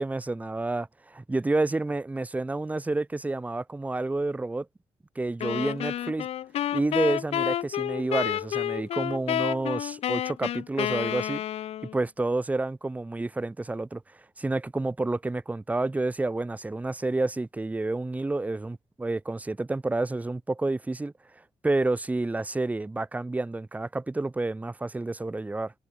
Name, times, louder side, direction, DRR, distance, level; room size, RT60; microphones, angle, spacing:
voice 1, 0.0-4.7 5.2-6.3 6.7-11.4 11.9-14.0 14.4-21.1 21.6-25.7, right 2 dB, 15° right, 0.6 m, -29 dB
sound 1, 5.4-12.0, left 11 dB, 65° left, 0.4 m, -30 dB
cardioid pair, 90°, 11 cm